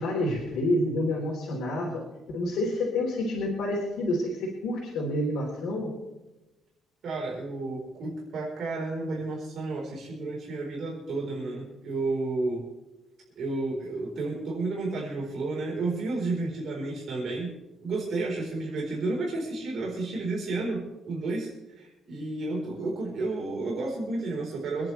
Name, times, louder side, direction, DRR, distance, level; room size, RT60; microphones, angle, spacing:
voice 1, 0.0-2.0 2.3-5.9, left 1 dB, 75° left, -2 dB, 4.0 m, -28 dB
voice 2, 7.0-12.7 13.4-17.5 17.8-21.5 21.7-24.9, right 3 dB, 50° right, -3 dB, 4.4 m, -31 dB
26.0 x 10.5 x 3.4 m, 1.0 s
cardioid pair, 175°, 0 cm